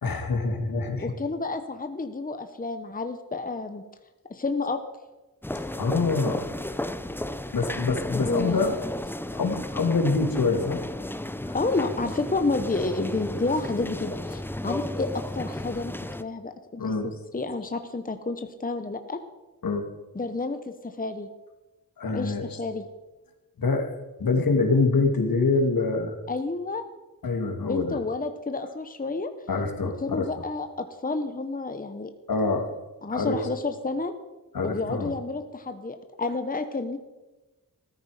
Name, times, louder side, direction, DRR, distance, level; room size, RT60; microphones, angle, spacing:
voice 1, 0.0-1.1 5.7-6.4 7.5-8.8 9.3-10.8 11.5-11.6 16.8-17.1 19.6-19.8 22.0-22.6 23.6-23.9 24.2-26.2 27.2-28.0 29.5-30.4 32.3-32.7 33.1-33.5 34.5-35.1, left 3 dB, 75° left, 4 dB, 2.4 m, -25 dB
voice 2, 1.0-3.8 4.3-4.8 8.1-8.8 11.5-15.9 16.2-19.2 20.1-21.3 22.1-22.8 26.3-26.8 27.7-29.3 30.0-32.1 33.0-34.1 34.6-37.0, left 3 dB, 25° left, 8 dB, 1.1 m, -30 dB
sound 1, 5.4-16.2, left 1 dB, 5° left, 0.7 m, -34 dB
15.5 x 13.5 x 5.0 m, 1.1 s
wide cardioid pair, 90°, 35 cm